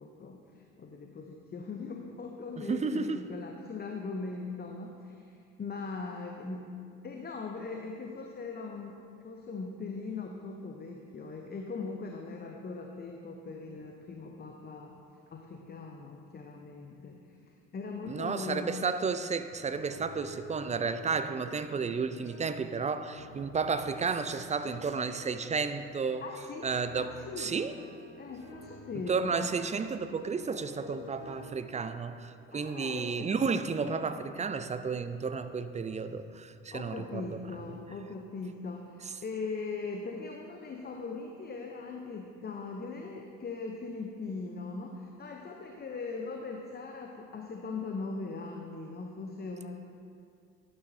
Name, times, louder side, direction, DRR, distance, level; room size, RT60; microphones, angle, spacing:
voice 1, 0.0-6.7 7.0-14.9 15.3-17.4 17.7-18.7 26.2-27.5 28.2-29.5 32.5-33.4 36.7-49.8, left 4 dB, 25° left, 2 dB, 0.8 m, -40 dB
voice 2, 2.7-3.2 18.1-26.3 26.6-27.7 29.1-37.3, right 5 dB, 20° right, 11 dB, 0.4 m, -32 dB
sound 1, 19.7-22.8 23.0-31.5, left 1 dB, 80° left, 1.8 m, -50 dB
11.5 x 8.9 x 2.7 m, 2.4 s
hypercardioid pair, 50°, 36 cm